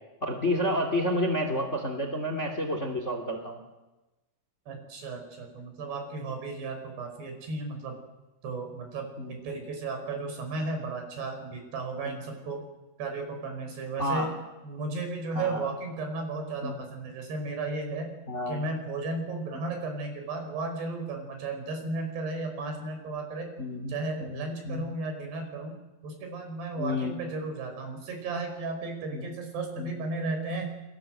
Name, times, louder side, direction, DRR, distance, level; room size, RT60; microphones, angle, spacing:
voice 1, 0.2-3.6 9.2-9.4 12.0-12.2 14.0-14.3 15.3-15.7 16.6-16.7 18.3-18.7 23.6-23.9 24.2-24.8 26.8-27.1 29.1-29.3 29.8-29.9, left 1 dB, 20° left, 6 dB, 2.4 m, -30 dB
voice 2, 4.7-8.0 8.4-12.6 13.0-14.3 14.6-18.1 18.5-23.5 23.9-25.7 26.0-30.7, right 3 dB, 75° right, 5 dB, 7.6 m, -34 dB
29.0 x 23.5 x 7.8 m, 1.1 s
omnidirectional pair, 4.8 m